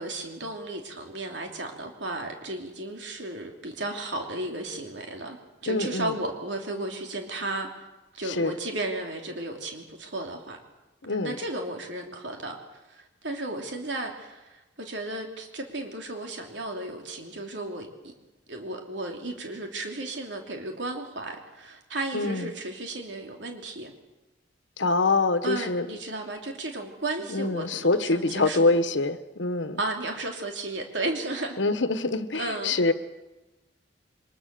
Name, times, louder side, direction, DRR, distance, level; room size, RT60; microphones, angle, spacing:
voice 1, 0.0-5.4 5.6-7.9 8.1-10.6 11.2-12.6 12.9-18.1 18.5-23.9 25.4-28.7 29.8-31.6 32.4-32.8, right 2 dB, 75° right, 2 dB, 3.0 m, -34 dB
voice 2, 5.7-6.2 8.2-8.5 11.0-11.4 22.1-22.5 24.8-25.9 27.3-29.8 31.6-32.9, left 3 dB, 90° left, 11 dB, 1.3 m, -25 dB
23.5 x 20.5 x 6.9 m, 1.1 s
head